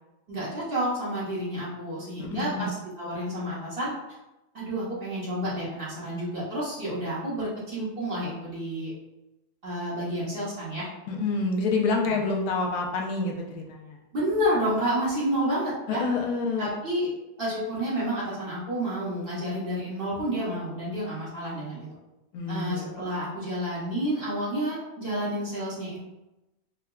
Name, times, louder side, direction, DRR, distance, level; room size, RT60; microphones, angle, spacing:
voice 1, 0.3-3.9 4.5-8.9 9.6-10.9 12.0-12.2 14.1-16.1 16.6-17.1 17.4-21.9 22.5-26.0, equal, 45° right, -8 dB, 1.1 m, -30 dB
voice 2, 2.2-2.7 11.1-14.0 15.9-16.7 22.3-22.8, left 3 dB, 85° left, 0 dB, 1.1 m, -28 dB
4.6 x 2.1 x 2.3 m, 0.97 s
omnidirectional pair, 1.6 m